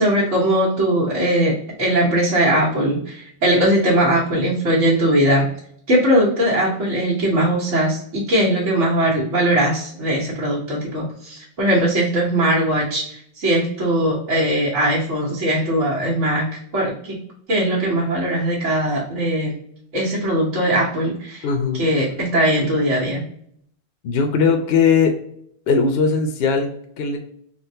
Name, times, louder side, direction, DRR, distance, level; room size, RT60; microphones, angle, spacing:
voice 1, 0.0-5.5 5.9-17.2 17.5-19.5 19.9-21.5 21.7-23.2, right 1 dB, 85° right, -9 dB, 1.4 m, -20 dB
voice 2, 21.4-21.8 24.0-25.1 25.7-27.2, left 5 dB, 65° left, 4 dB, 0.7 m, -19 dB
3.7 x 2.1 x 2.6 m, 0.67 s
omnidirectional pair, 1.2 m